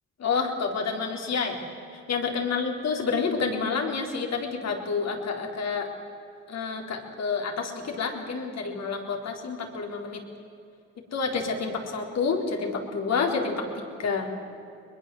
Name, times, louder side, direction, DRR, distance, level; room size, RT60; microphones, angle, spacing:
voice 1, 0.2-1.6 2.1-5.9 6.5-10.2 11.1-14.3, left 5 dB, 60° left, 3 dB, 4.3 m, -29 dB
22.0 x 21.5 x 8.0 m, 2.6 s
cardioid pair, 90°, 30 cm